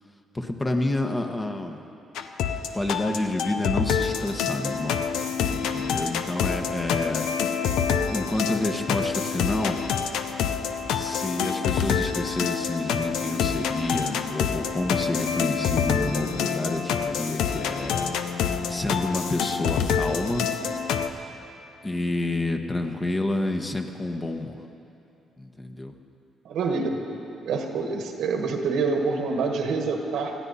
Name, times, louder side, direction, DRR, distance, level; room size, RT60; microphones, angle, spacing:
voice 1, 0.3-1.9 2.7-5.0 5.5-7.3 8.1-9.8 10.9-18.2 18.7-20.5 21.8-24.6 25.4-25.9, left 2 dB, 20° left, 4 dB, 1.2 m, -29 dB
sound 1, 2.2-21.1, left 7 dB, 90° left, 0.7 m, -27 dB
voice 2, 26.4-27.0 27.4-30.3, right 4 dB, 80° right, 3 dB, 1.6 m, -26 dB
19.5 x 14.0 x 4.2 m, 2.8 s
cardioid pair, 90°, 0 cm